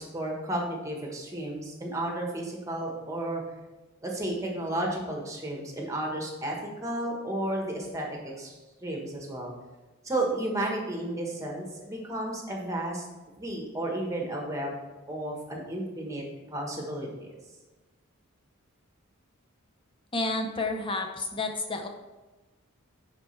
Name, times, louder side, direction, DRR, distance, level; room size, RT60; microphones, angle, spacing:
voice 1, 0.0-3.4 4.0-6.6 6.8-8.5 8.8-9.5 10.0-13.0 13.4-14.7 15.1-16.2 16.5-17.3, right 1 dB, 15° right, 0 dB, 1.2 m, -32 dB
voice 2, 20.1-21.9, left 2 dB, 25° left, 4 dB, 0.7 m, -30 dB
9.8 x 4.5 x 3.2 m, 1.2 s
head